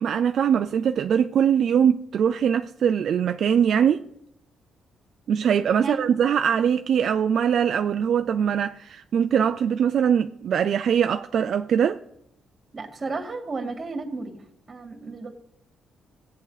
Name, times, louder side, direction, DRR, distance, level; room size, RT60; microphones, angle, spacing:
voice 1, 0.0-4.0 5.3-12.0, right 8 dB, 60° right, 0.5 m, -22 dB
voice 2, 12.7-14.4 14.7-15.3, right 3 dB, 35° right, 2.3 m, -33 dB
16.5 x 8.5 x 4.1 m
cardioid pair, 90°, 0 cm